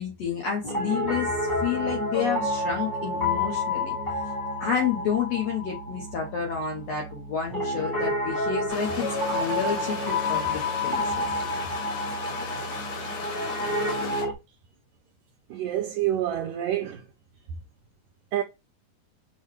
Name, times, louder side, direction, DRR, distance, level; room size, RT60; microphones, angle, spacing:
voice 1, 0.0-1.3 1.6-4.0 4.6-11.3, left 7 dB, 65° left, 1.8 m, -30 dB
Piano, 0.6-14.3, left 1 dB, 40° left, 0.6 m, -29 dB
sound 1, 8.7-14.2, left 5 dB, 90° left, 2.8 m, -36 dB
voice 2, 15.5-17.1 18.3-18.4, right 12 dB, 80° right, 1.8 m, -27 dB
5.7 x 2.2 x 3.0 m
omnidirectional pair, 3.5 m